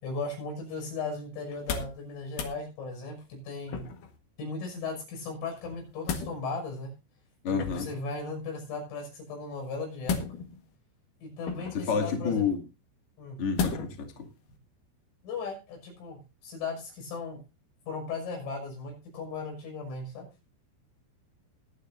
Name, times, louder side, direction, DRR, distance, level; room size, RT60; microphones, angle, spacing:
voice 1, 0.0-3.9 4.4-6.9 7.5-10.2 11.2-12.4 13.2-13.4 15.2-17.4 17.9-20.3, left 4 dB, 75° left, 8.5 m, -37 dB
sound 1, 1.5-2.0 2.3-2.6 3.7-4.2 5.6-6.3 7.5-8.0 10.0-10.7 11.4-11.9 13.6-14.0 14.5-14.6, left 5 dB, 60° left, 2.4 m, -33 dB
voice 2, 7.4-7.9 11.7-12.6 13.4-14.3, left 6 dB, 40° left, 2.2 m, -29 dB
21.5 x 9.2 x 2.6 m
omnidirectional pair, 5.8 m